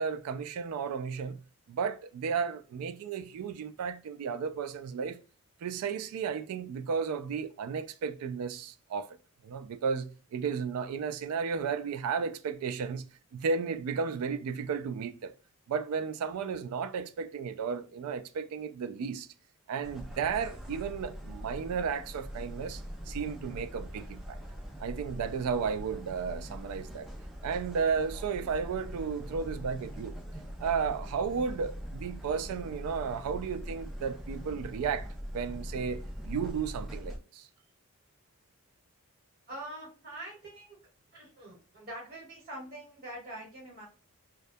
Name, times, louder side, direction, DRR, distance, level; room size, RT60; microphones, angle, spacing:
voice 1, 0.0-1.4 1.7-5.2 5.6-9.1 9.4-13.1 13.3-15.3 15.7-19.3 19.7-24.4 24.8-27.1 27.4-30.2 30.6-35.1 35.3-37.5, right 6 dB, 85° right, 0.3 m, -33 dB
sound 1, 19.8-37.2, equal, ahead, 0.4 m, -42 dB
voice 2, 39.5-40.8 41.1-43.9, right 1 dB, 45° right, 1.3 m, -44 dB
2.2 x 2.1 x 2.5 m
head